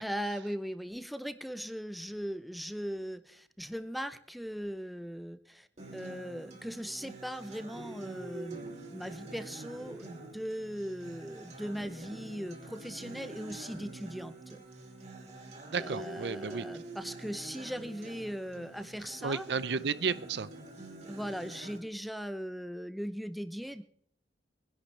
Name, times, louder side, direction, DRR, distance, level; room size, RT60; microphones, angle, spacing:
voice 1, 0.0-14.6 15.7-19.4 21.1-23.8, equal, ahead, 10 dB, 0.6 m, -39 dB
Acoustic guitar, 5.8-21.8, right 2 dB, 40° right, 2.6 m, -46 dB
voice 2, 15.7-16.7 19.2-20.5, right 5 dB, 70° right, 16 dB, 0.6 m, -32 dB
22.5 x 11.0 x 3.3 m, 0.67 s
head